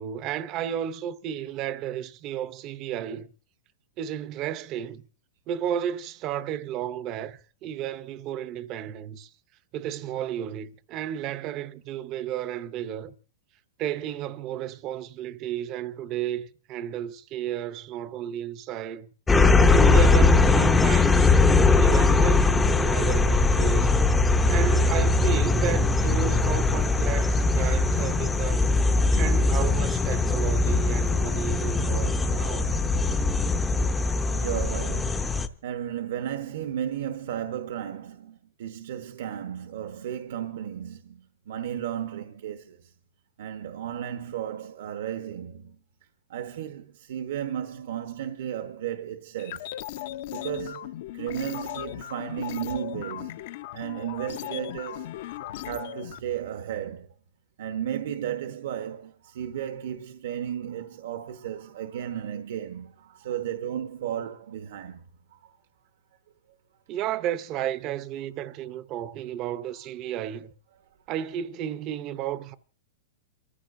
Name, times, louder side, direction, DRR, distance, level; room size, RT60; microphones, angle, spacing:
voice 1, 0.0-3.3 4.0-5.0 5.5-9.3 9.7-13.1 13.8-19.1 19.7-21.4 21.7-24.0 24.5-28.7 29.2-32.7 66.9-70.5 71.1-72.6, right 10 dB, 25° right, 0.7 m, -33 dB
sound 1, 19.3-35.5, left 3 dB, 5° left, 0.6 m, -21 dB
sound 2, 25.2-25.7 26.0-26.2 26.4-29.3 29.5-30.8 31.1-31.2, left 8 dB, 80° left, 1.2 m, -42 dB
voice 2, 34.3-35.4 35.6-42.9 43.4-45.8 46.3-49.7 50.3-53.4 53.7-55.1 55.6-57.1 57.6-65.0 65.3-65.6 68.6-68.7 69.8-69.9 70.2-70.3 71.1-71.3, right 10 dB, 65° right, 1.1 m, -34 dB
sound 3, 49.4-56.2, left 13 dB, 50° left, 0.7 m, -37 dB
28.5 x 14.5 x 2.6 m
supercardioid pair, 170°, 0 cm